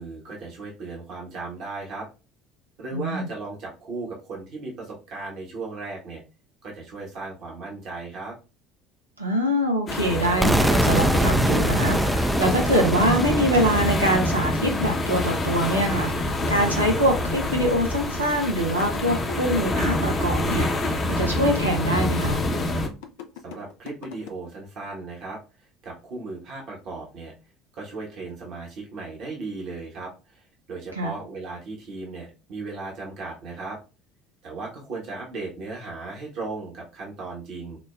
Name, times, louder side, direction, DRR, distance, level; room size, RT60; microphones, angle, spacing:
voice 1, 0.0-2.1 2.8-6.2 6.6-8.4 23.4-27.3 27.7-33.8 34.4-37.8, right 3 dB, 55° right, 1.0 m, -36 dB
voice 2, 2.9-3.3 9.2-22.4 31.0-31.1, equal, 90° right, 0.5 m, -24 dB
sound 1, 9.9-22.9, left 1 dB, 35° left, 0.8 m, -26 dB
sound 2, 10.4-16.3, right 1 dB, 5° right, 0.3 m, -25 dB
sound 3, 18.9-24.3, left 9 dB, 65° left, 0.4 m, -40 dB
4.9 x 2.1 x 2.3 m
figure-of-eight pair, 60°, 0 cm